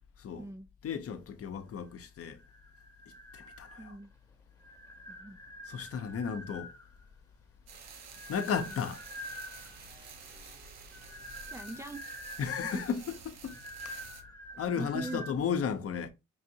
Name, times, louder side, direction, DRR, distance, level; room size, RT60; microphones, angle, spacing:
voice 1, 0.8-2.4 3.3-4.0 5.7-6.7 8.3-9.0 11.4-11.5 12.4-14.1 14.6-16.1, left 7 dB, 50° left, 0.7 m, -34 dB
sound 1, 2.3-4.1 4.6-7.0 7.8-9.9 10.8-15.3, left 1 dB, 10° left, 0.9 m, -46 dB
voice 2, 3.8-4.1 5.1-5.4 8.7-8.8 11.5-12.2 12.6-12.8 14.7-15.3, right 2 dB, 10° right, 0.3 m, -41 dB
sound 2, 7.7-11.7, right 3 dB, 30° right, 0.9 m, -57 dB
sound 3, 7.7-14.2, right 7 dB, 60° right, 0.8 m, -51 dB
5.4 x 2.6 x 2.7 m
cardioid pair, 90°, 30 cm